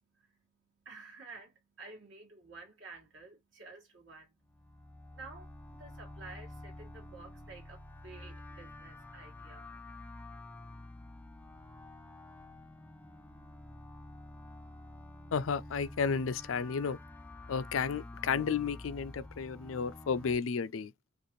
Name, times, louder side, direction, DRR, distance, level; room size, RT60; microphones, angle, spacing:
voice 1, 0.9-4.3 5.1-9.7, right 3 dB, 65° right, 1.8 m, -51 dB
sound 1, 4.5-20.3, left 2 dB, 10° left, 0.4 m, -49 dB
voice 2, 15.3-17.0 17.5-20.9, left 6 dB, 80° left, 0.4 m, -32 dB
5.1 x 2.5 x 3.1 m
head